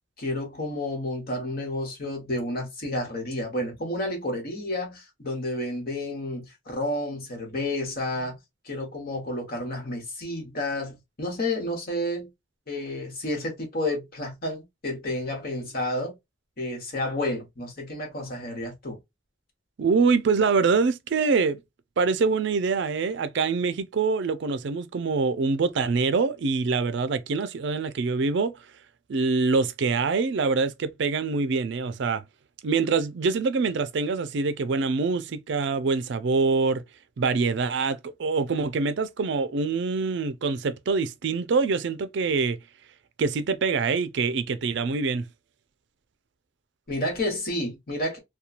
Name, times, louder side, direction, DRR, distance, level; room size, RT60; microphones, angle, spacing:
voice 1, 0.2-8.4 8.6-12.3 12.7-16.1 16.6-19.0 46.9-48.2, left 1 dB, 50° left, 1.2 m, -30 dB
voice 2, 19.8-21.6 22.0-28.5 29.1-32.2 32.6-36.8 37.2-42.6 43.2-45.3, right 4 dB, 65° right, 0.4 m, -25 dB
2.9 x 2.2 x 2.3 m
head